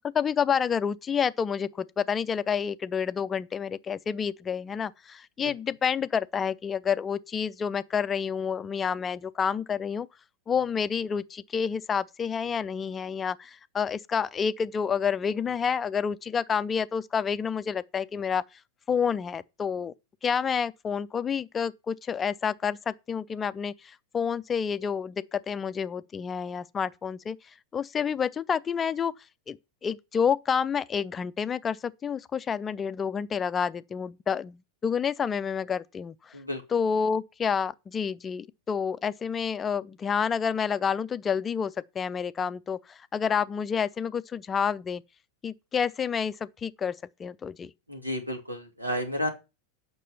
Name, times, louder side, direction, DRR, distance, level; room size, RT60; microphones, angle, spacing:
voice 1, 0.0-10.1 10.5-18.4 18.9-19.9 20.2-27.4 27.7-29.1 29.5-29.6 29.8-36.3 36.7-45.0 45.4-47.7, left 7 dB, 20° left, 0.5 m, -29 dB
voice 2, 47.9-49.3, equal, 85° right, 2.6 m, -32 dB
9.2 x 6.1 x 5.7 m
figure-of-eight pair, 90°, 0 cm